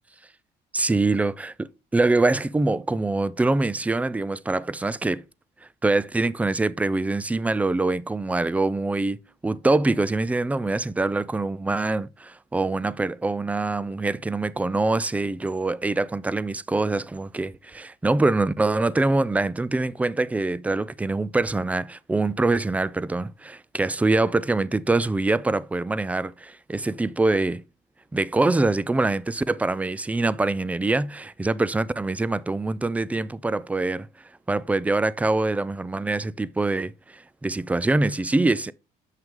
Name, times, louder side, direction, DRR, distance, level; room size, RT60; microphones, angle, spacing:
voice 1, 0.7-5.2 5.8-27.6 28.1-34.1 34.5-38.7, right 2 dB, 10° right, 0.3 m, -24 dB
7.5 x 5.9 x 3.7 m
cardioid pair, 110°, 17 cm